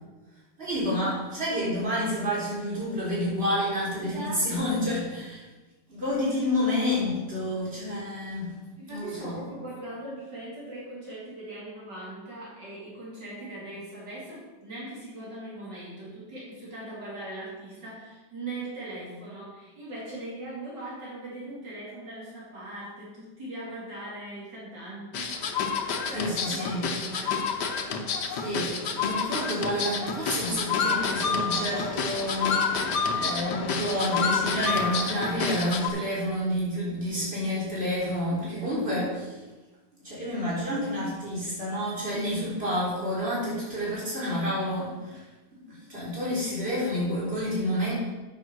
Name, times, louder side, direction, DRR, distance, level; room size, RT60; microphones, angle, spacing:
voice 1, 0.6-5.4 5.9-8.5 8.9-9.5 26.1-26.9 28.3-39.4 40.0-45.2 45.6-47.9, equal, 35° right, -7 dB, 4.1 m, -29 dB
voice 2, 4.0-4.5 4.7-5.0 6.1-6.4 6.9-7.1 8.8-27.4 38.5-38.7, right 1 dB, 75° right, -6 dB, 3.5 m, -40 dB
sound 1, 25.1-35.9, left 5 dB, 70° left, 1.6 m, -28 dB
9.1 x 6.4 x 6.2 m, 1.2 s
omnidirectional pair, 1.9 m